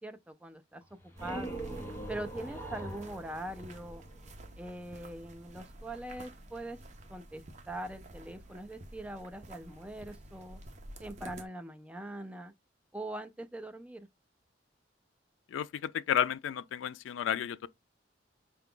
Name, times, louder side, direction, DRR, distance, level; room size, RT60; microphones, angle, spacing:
voice 1, 0.0-1.7 2.1-4.0 4.6-6.8 7.1-10.6 11.0-12.5 12.9-14.1, right 1 dB, 5° right, 0.3 m, -42 dB
sound 1, 0.8-4.5, right 2 dB, 10° left, 0.9 m, -42 dB
sound 2, 1.2-11.4, right 1 dB, 40° right, 0.7 m, -50 dB
voice 2, 15.5-17.7, left 9 dB, 85° left, 0.3 m, -32 dB
4.7 x 2.3 x 3.7 m
head